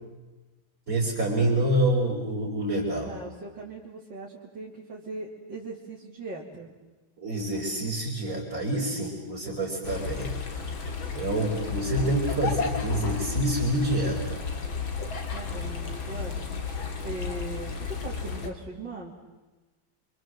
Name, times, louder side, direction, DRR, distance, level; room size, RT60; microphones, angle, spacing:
voice 1, 0.9-3.1 7.2-10.3 11.1-14.4, right 1 dB, 40° right, -6 dB, 5.2 m, -27 dB
voice 2, 3.1-6.7 15.3-19.1, right 2 dB, 65° right, -5 dB, 3.7 m, -40 dB
sound 1, 9.8-18.5, left 5 dB, 80° left, 3.2 m, -32 dB
28.0 x 25.5 x 7.8 m, 1.2 s
omnidirectional pair, 2.2 m